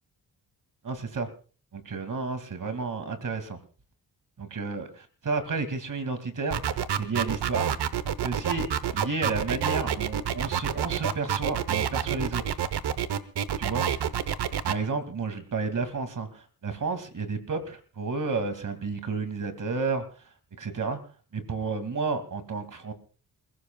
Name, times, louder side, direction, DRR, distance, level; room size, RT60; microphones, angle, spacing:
voice 1, 0.8-1.3 1.7-3.6 4.4-7.8 8.2-8.7 8.9-12.6 13.6-13.8 14.6-20.0 20.6-21.0 21.3-22.9, right 4 dB, 50° right, 9 dB, 2.5 m, -31 dB
sound 1, 6.5-14.7, right 9 dB, 80° right, 1.1 m, -28 dB
27.5 x 16.0 x 2.3 m, 0.39 s
cardioid pair, 75°, 39 cm